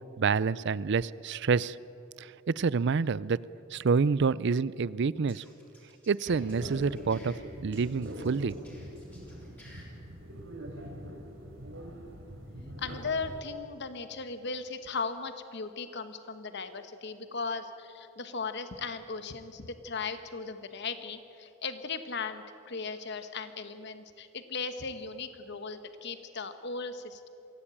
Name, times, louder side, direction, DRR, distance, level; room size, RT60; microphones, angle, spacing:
voice 1, 0.2-1.8 2.2-3.4 3.7-5.4 6.1-8.6, right 5 dB, 60° right, 20 dB, 0.5 m, -28 dB
sound 1, 5.1-7.4 7.7-9.8, left 1 dB, 10° left, 5.9 m, -56 dB
sound 2, 6.3-13.4, equal, 90° right, 3.6 m, -43 dB
voice 2, 12.8-27.3, left 4 dB, 60° left, 10 dB, 1.2 m, -37 dB
24.0 x 16.0 x 8.8 m, 3.0 s
head